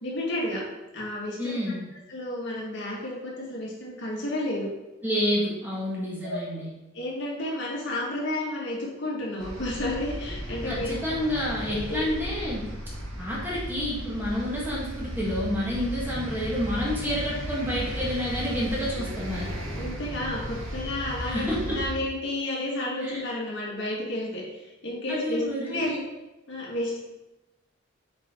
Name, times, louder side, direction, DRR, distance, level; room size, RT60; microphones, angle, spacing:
voice 1, 0.0-0.6 0.9-1.6 2.1-4.7 6.2-6.4 6.9-10.9 11.7-12.1 16.3-16.5 19.7-26.0 26.5-27.0, left 1 dB, 60° left, -5 dB, 2.2 m, -31 dB
voice 2, 1.4-1.9 5.0-6.7 10.6-12.6 13.2-19.5 21.2-21.8 23.0-23.3 25.1-25.9, equal, 10° right, -6 dB, 1.7 m, -29 dB
sound 1, 9.4-21.9, equal, 70° right, 1.5 m, -35 dB
8.3 x 4.4 x 3.8 m, 1.0 s
head